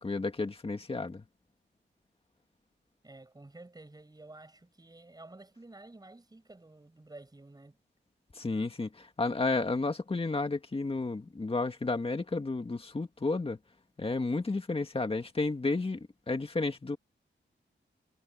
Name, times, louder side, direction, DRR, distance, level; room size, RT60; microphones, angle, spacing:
voice 1, 0.0-1.2 8.4-13.6 14.0-17.0, left 3 dB, 30° left, 2.0 m, -32 dB
voice 2, 3.0-7.8, right 2 dB, 20° right, 6.6 m, -51 dB
wide cardioid pair, 160°, 20 cm